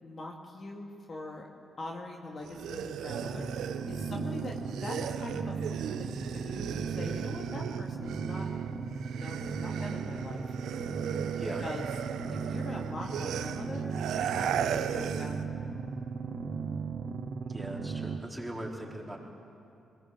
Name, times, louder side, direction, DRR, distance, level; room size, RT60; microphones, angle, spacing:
voice 1, 0.0-1.4 1.8-8.5 9.2-10.4 11.6-11.9 12.4-15.6, left 2 dB, 45° left, 0 dB, 2.3 m, -42 dB
sound 1, 2.4-8.6 8.9-15.4, right 9 dB, 75° right, 0.8 m, -37 dB
sound 2, 3.1-18.2, right 5 dB, 60° right, 1.4 m, -36 dB
voice 2, 17.4-19.2, right 1 dB, 5° right, -2 dB, 4.2 m, -40 dB
21.5 x 18.0 x 7.8 m, 2.6 s
supercardioid pair, 50°, 0 cm